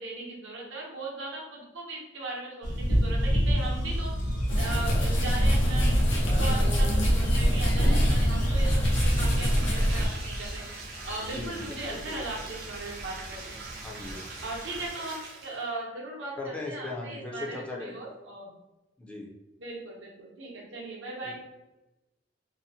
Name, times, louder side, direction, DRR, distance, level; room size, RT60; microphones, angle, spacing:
voice 1, 0.0-4.1 4.6-10.6 11.0-13.6 14.4-18.5 19.6-21.4, right 2 dB, 75° right, -2 dB, 0.8 m, -38 dB
sound 1, 2.6-14.9, equal, 45° left, 0.8 m, -31 dB
sound 2, 4.5-10.1, equal, 85° left, 0.6 m, -24 dB
Bathtub (filling or washing), 8.5-15.8, right 3 dB, 55° right, 0.5 m, -43 dB
voice 2, 11.3-11.6 11.9-12.2 13.8-14.3 16.4-17.9 19.0-19.3 21.2-21.3, left 2 dB, 5° left, -3 dB, 0.4 m, -38 dB
2.7 x 2.0 x 2.7 m, 1.0 s
head